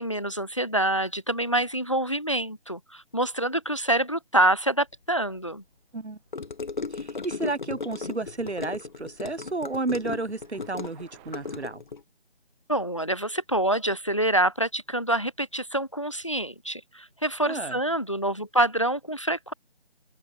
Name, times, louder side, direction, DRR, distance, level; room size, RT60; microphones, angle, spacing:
voice 1, 0.0-5.6 12.7-19.5, right 1 dB, 30° left, 0.5 m, -26 dB
sound 1, 5.6-11.7, right 35 dB, 10° right, 7.3 m, -60 dB
Gurgling / Car passing by / Sink (filling or washing), 6.3-12.0, left 4 dB, 45° left, 0.9 m, -36 dB
voice 2, 6.9-11.8 17.4-17.8, right 3 dB, 80° right, 3.3 m, -32 dB
open air
figure-of-eight pair, 170°, 33 cm